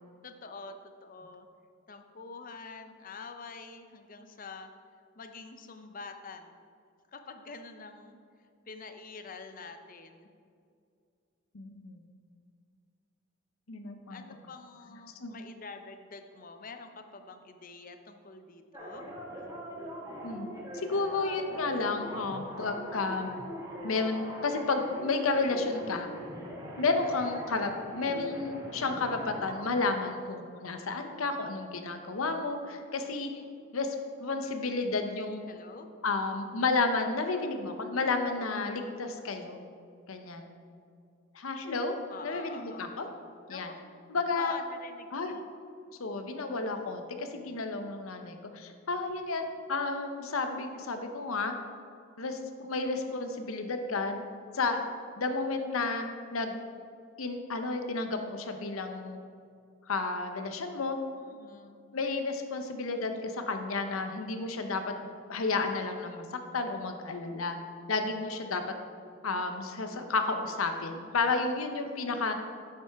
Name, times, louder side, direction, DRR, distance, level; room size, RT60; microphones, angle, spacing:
voice 1, 0.2-0.7 1.0-1.5 1.9-4.7 5.2-6.6 7.1-8.2 8.7-10.3 14.1-19.1 35.5-35.9 42.1-42.9 43.5-43.7 44.4-45.4 61.2-61.8, left 4 dB, 40° left, 7 dB, 0.6 m, -45 dB
voice 2, 11.5-12.0 13.7-14.2 15.2-15.3 20.2-20.5 20.9-23.3 23.8-26.1 26.8-33.3 33.7-35.4 36.0-39.6 40.1-40.5 41.3-41.9 42.2-43.1 43.5-43.7 44.1-44.5 45.1-45.3 46.0-49.4 49.7-51.5 52.2-54.2 54.5-54.8 55.2-56.0 56.3-56.6 57.2-59.2 59.9-61.0 61.9-67.6 67.9-68.6 69.2-72.3, left 3 dB, 80° left, 6 dB, 0.8 m, -32 dB
sound 1, 18.7-29.7, equal, 20° right, 1.2 m, -42 dB
9.3 x 7.6 x 3.5 m, 2.3 s
head